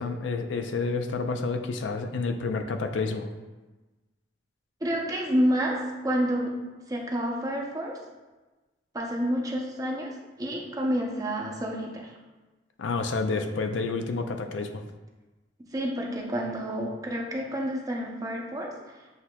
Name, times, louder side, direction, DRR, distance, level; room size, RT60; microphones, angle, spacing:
voice 1, 0.0-3.3 12.8-14.8, left 3 dB, 90° left, 6 dB, 0.4 m, -29 dB
voice 2, 4.8-6.5 6.9-8.0 8.9-12.1 15.7-18.7, equal, 20° right, 0 dB, 0.6 m, -29 dB
7.8 x 2.8 x 2.3 m, 1.2 s
head